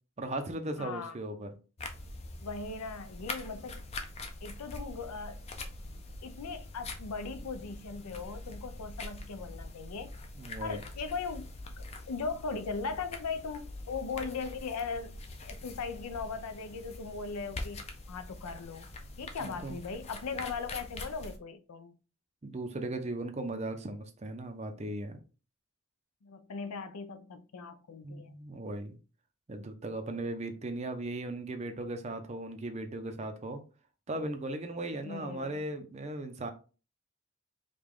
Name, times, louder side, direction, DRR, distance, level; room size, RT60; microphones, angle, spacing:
voice 1, 0.2-1.5 10.4-10.8 19.4-19.8 22.4-25.2 28.0-29.0 29.5-33.6 34.1-36.5, right 2 dB, 30° right, 0.5 m, -37 dB
voice 2, 0.8-1.2 2.4-3.8 4.4-5.4 6.2-10.1 10.6-11.5 11.8-17.8 18.1-18.9 19.2-21.9 26.2-28.4 35.0-35.5, left 4 dB, 90° left, 0.5 m, -39 dB
sound 1, 1.8-21.4, left 2 dB, 30° left, 0.4 m, -44 dB
4.9 x 2.3 x 3.6 m
head